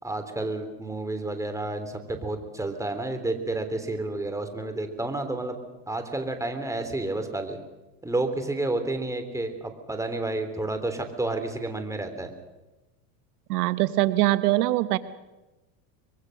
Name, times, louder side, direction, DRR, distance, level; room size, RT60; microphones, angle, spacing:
voice 1, 0.0-5.6 5.9-7.6 8.0-12.3, right 2 dB, 5° right, 6 dB, 3.1 m, -30 dB
voice 2, 13.5-15.0, right 17 dB, 70° right, 14 dB, 1.2 m, -22 dB
24.0 x 23.0 x 6.4 m, 1.1 s
supercardioid pair, 115°, 47 cm